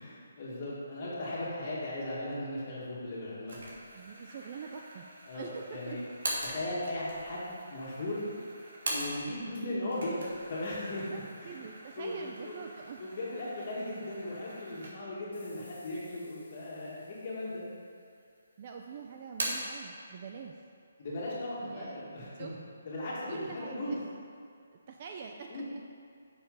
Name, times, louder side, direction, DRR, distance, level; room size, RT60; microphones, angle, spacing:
voice 1, 0.0-3.8 5.3-6.0 6.4-8.2 8.9-10.2 10.5-11.1 11.4-11.5 12.0-12.2 12.4-12.5 13.0-17.6 21.0-22.5 22.8-24.0 25.5-25.7, left 1 dB, 30° left, -6 dB, 2.1 m, -37 dB
sound 1, 3.5-9.5 9.8-15.3 15.7-15.8 16.6-17.3 17.6-18.4 18.7-19.8, right 1 dB, 70° right, 2.6 m, -42 dB
voice 2, 3.9-5.1 5.3-6.0 11.0-13.0 18.6-20.5 21.6-22.5 23.3-24.0 24.7-25.6, right 6 dB, 25° right, 2 dB, 0.4 m, -44 dB
sound 2, 15.3-18.6, left 3 dB, 60° left, 1.8 m, -61 dB
8.4 x 6.6 x 5.5 m, 2.3 s
hypercardioid pair, 175°, 0 cm